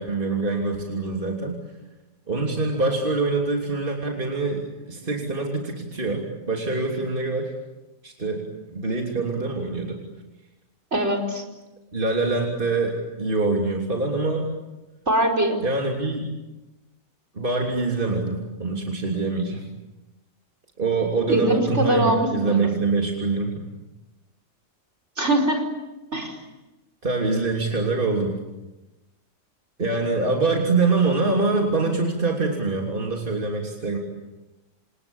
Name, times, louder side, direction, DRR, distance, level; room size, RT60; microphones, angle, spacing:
voice 1, 0.0-1.6 2.3-7.5 8.0-10.0 11.9-14.5 15.6-16.3 17.3-19.6 20.8-23.7 27.0-28.4 29.8-34.0, right 3 dB, 40° right, 0 dB, 3.4 m, -24 dB
voice 2, 10.9-11.4 15.1-15.6 21.3-22.7 25.2-25.7 26.1-26.4, right 1 dB, 55° right, 5 dB, 4.9 m, -22 dB
29.0 x 28.0 x 7.2 m, 1.0 s
omnidirectional pair, 1.4 m